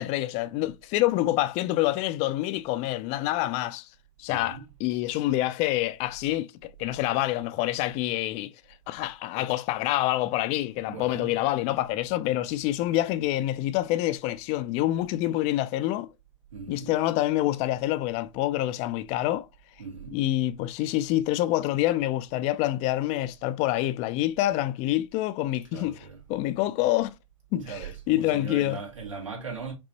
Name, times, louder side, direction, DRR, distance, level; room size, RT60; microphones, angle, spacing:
voice 1, 0.0-3.9 4.2-8.5 8.9-16.1 16.7-19.5 20.1-27.1 27.5-28.8, left 15 dB, 45° left, 0.4 m, -27 dB
voice 2, 4.3-4.6 10.9-11.4 16.5-16.9 19.8-20.2 25.7-26.2 27.5-29.7, right 5 dB, 80° right, 2.4 m, -39 dB
5.3 x 3.0 x 2.9 m
hypercardioid pair, 95°, 16 cm